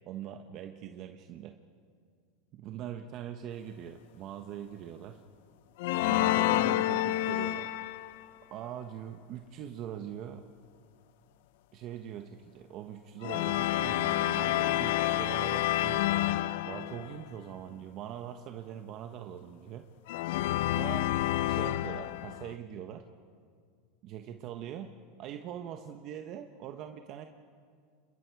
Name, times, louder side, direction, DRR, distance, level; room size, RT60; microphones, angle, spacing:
voice 1, 0.1-1.5 2.5-5.2 6.0-7.7 8.5-10.4 11.7-16.1 16.6-19.9 20.7-21.1 21.5-23.1 24.0-24.9 25.2-27.3, right 10 dB, 45° right, 6 dB, 1.1 m, -42 dB
sound 1, 5.8-8.2 13.2-17.2 20.1-22.5, left 14 dB, 70° left, 0.6 m, -29 dB
27.5 x 21.5 x 4.8 m, 2.2 s
supercardioid pair, 125°, 0 cm